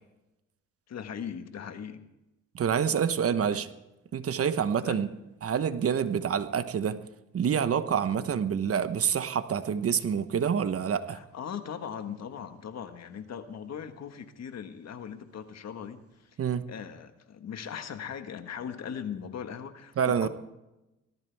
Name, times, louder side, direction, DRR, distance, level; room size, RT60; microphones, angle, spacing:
voice 1, 0.9-2.0 3.5-3.6 4.8-5.1 8.2-8.4 11.1-16.4 16.7-20.3, left 8 dB, 60° left, 8 dB, 1.6 m, -39 dB
voice 2, 2.5-3.7 4.1-5.1 5.4-7.0 7.3-11.2 16.4-16.6 20.0-20.3, right 7 dB, 50° right, 12 dB, 1.1 m, -27 dB
19.0 x 14.5 x 3.5 m, 0.94 s
cardioid pair, 90°, 30 cm